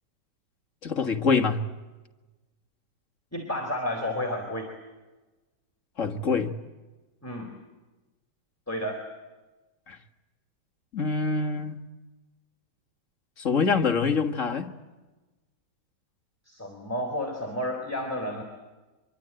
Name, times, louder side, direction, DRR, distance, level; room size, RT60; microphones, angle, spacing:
voice 1, 0.8-1.6 6.0-6.5 9.9-10.0 10.9-11.8 13.4-14.7, left 5 dB, 45° left, 6 dB, 1.9 m, -25 dB
voice 2, 3.3-4.7 7.2-7.5 8.7-9.0 16.5-18.4, left 1 dB, 10° left, 0 dB, 3.8 m, -31 dB
25.0 x 23.5 x 8.9 m, 1.2 s
omnidirectional pair, 2.0 m